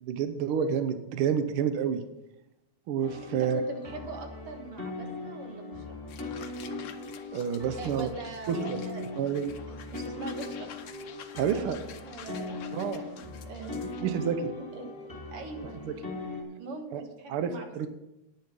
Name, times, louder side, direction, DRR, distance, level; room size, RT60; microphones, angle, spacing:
voice 1, 0.0-2.0 2.9-3.6 7.3-8.1 8.5-8.8 9.2-9.5 11.4-11.8 12.7-13.0 14.0-14.4 15.9-16.0 16.9-17.0 17.3-17.9, right 8 dB, 75° right, 9 dB, 1.2 m, -29 dB
sound 1, 3.0-16.4, left 3 dB, 10° left, 1.8 m, -40 dB
voice 2, 3.3-6.0 7.8-9.1 9.7-10.7 11.4-13.1 13.4-14.2 14.6-14.9 15.3-15.8 16.6-17.9, right 3 dB, 55° right, 4 dB, 2.2 m, -42 dB
sound 2, 6.1-14.0, left 8 dB, 90° left, 1.0 m, -49 dB
10.5 x 9.5 x 5.2 m, 0.91 s
omnidirectional pair, 3.3 m